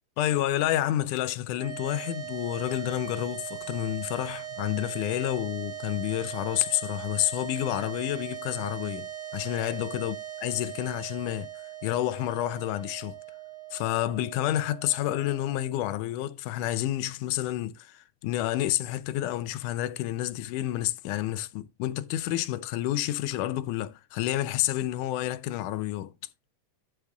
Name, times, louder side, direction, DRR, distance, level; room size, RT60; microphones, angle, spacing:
voice 1, 0.2-10.2 10.4-11.5 11.8-13.2 13.7-26.1, left 14 dB, 85° left, 2.2 m, -29 dB
sound 1, 1.5-16.0, right 10 dB, 50° right, 1.3 m, -40 dB
13.0 x 4.8 x 3.8 m
omnidirectional pair, 3.6 m